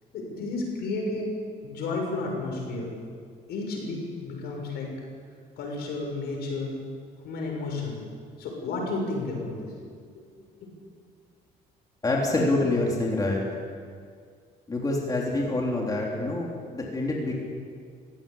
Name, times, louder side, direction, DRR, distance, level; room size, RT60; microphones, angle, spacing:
voice 1, 0.1-1.3 1.6-2.9 3.5-4.9 5.6-6.8 7.2-8.0 8.4-9.7 10.6-10.7, left 3 dB, 75° left, 1 dB, 6.7 m, -32 dB
voice 2, 12.0-13.4 14.7-17.3, left 2 dB, 20° left, -2 dB, 3.7 m, -26 dB
19.0 x 16.5 x 8.8 m, 2.1 s
cardioid pair, 110°, 17 cm